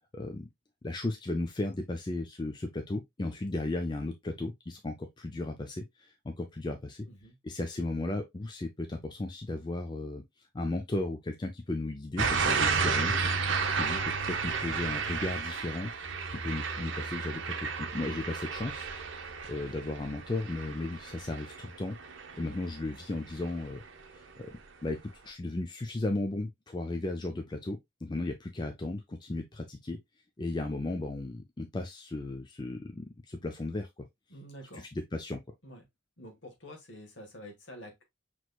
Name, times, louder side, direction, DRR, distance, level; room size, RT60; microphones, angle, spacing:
voice 1, 0.1-0.5 0.8-7.1 7.4-10.2 10.5-15.9 16.3-18.9 19.5-22.0 22.4-23.8 24.1-24.5 24.8-30.0 30.4-34.1 34.7-35.4, left 2 dB, 20° left, 0.4 m, -35 dB
sound 1, 12.2-23.0 23.4-23.8, right 5 dB, 75° right, 0.8 m, -32 dB
voice 2, 12.3-12.9 34.3-34.9 35.6-35.8 36.2-38.0, equal, 65° left, 1.5 m, -48 dB
6.1 x 3.0 x 2.2 m
head